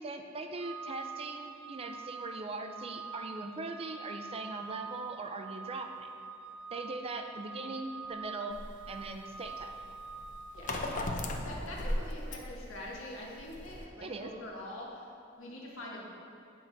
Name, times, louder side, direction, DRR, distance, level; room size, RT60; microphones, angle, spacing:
voice 1, 0.0-6.1 6.7-8.6 8.9-9.7 14.0-14.3, right 3 dB, 30° right, 5 dB, 0.4 m, -40 dB
Organ, 0.6-11.3, right 5 dB, 60° right, 0.9 m, -45 dB
sound 1, 8.5-13.9, left 1 dB, 40° left, 0.6 m, -37 dB
voice 2, 10.5-10.9 11.4-15.1 15.4-16.0, left 1 dB, 85° left, -3 dB, 1.4 m, -44 dB
8.9 x 3.9 x 4.5 m, 2.7 s
head